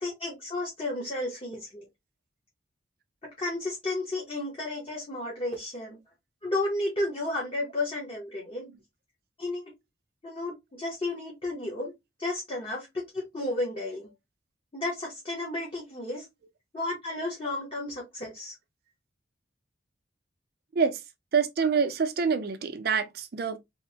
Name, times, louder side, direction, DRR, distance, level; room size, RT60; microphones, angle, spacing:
voice 1, 0.0-1.8 3.2-6.0 6.4-8.7 9.4-9.6 10.2-11.9 12.2-14.1 14.7-16.3 16.7-18.5, left 2 dB, 30° left, 0.7 m, -32 dB
voice 2, 21.3-23.6, right 5 dB, 55° right, 0.4 m, -26 dB
2.9 x 2.0 x 2.6 m
head